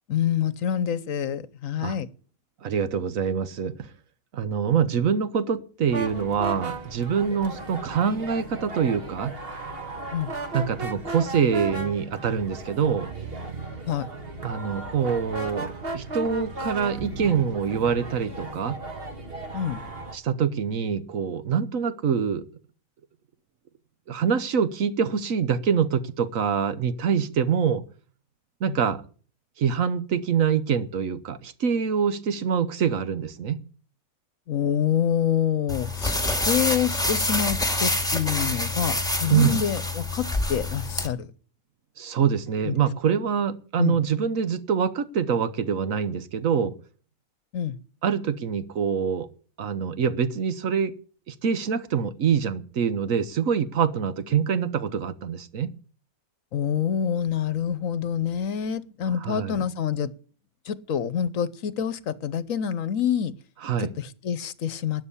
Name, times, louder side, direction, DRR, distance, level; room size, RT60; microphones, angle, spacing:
voice 1, 0.1-2.1 10.1-10.3 13.9-14.1 19.5-19.8 28.7-28.8 34.5-41.3 42.6-42.7 43.8-44.0 47.5-47.7 56.5-60.1 60.7-63.3 64.0-65.1, left 9 dB, 70° left, 1.2 m, -27 dB
voice 2, 2.6-3.9 4.3-9.3 10.5-13.1 14.4-18.8 20.1-22.4 24.1-27.8 28.6-29.0 29.6-33.6 39.3-39.7 42.0-46.7 48.0-49.3 49.6-50.9 51.3-55.7 59.2-59.7 63.6-63.9, right 7 dB, 65° right, 1.3 m, -25 dB
sound 1, 5.9-20.2, right 2 dB, 40° right, 1.7 m, -35 dB
sound 2, 35.7-41.1, left 2 dB, 5° left, 1.9 m, -26 dB
12.5 x 8.9 x 8.3 m
omnidirectional pair, 1.5 m